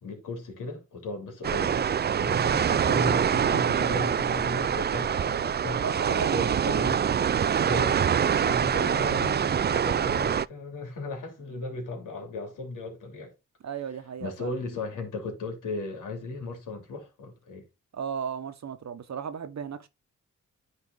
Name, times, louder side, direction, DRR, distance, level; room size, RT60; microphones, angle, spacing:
voice 1, 0.0-7.0 7.6-8.0 8.4-13.3 14.2-17.7, left 2 dB, 90° left, 2.9 m, -36 dB
sound 1, 1.4-10.4, right 8 dB, 35° right, 0.4 m, -25 dB
voice 2, 5.8-6.7 13.6-14.5 17.9-19.9, right 7 dB, 60° right, 1.2 m, -35 dB
9.8 x 4.1 x 3.8 m
cardioid pair, 70°, 31 cm